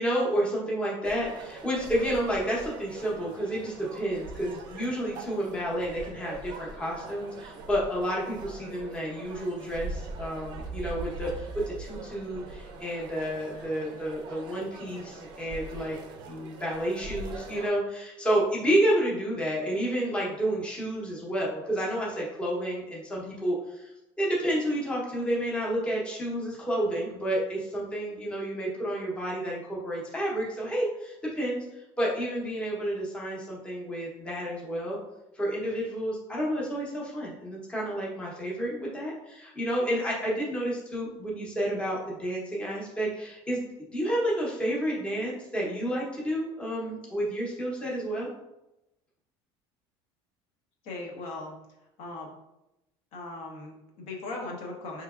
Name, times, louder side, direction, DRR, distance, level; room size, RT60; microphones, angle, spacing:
voice 1, 0.0-16.0 16.2-23.9 24.2-35.0 35.3-43.7 43.9-48.3, right 1 dB, 10° left, -5 dB, 0.8 m, -30 dB
sound 1, 1.0-17.7, right 3 dB, 40° right, 0.5 m, -42 dB
voice 2, 50.8-51.5 52.0-52.3 53.1-55.0, left 2 dB, 65° left, -1 dB, 0.9 m, -38 dB
4.5 x 2.9 x 2.4 m, 0.91 s
cardioid pair, 165°, 12 cm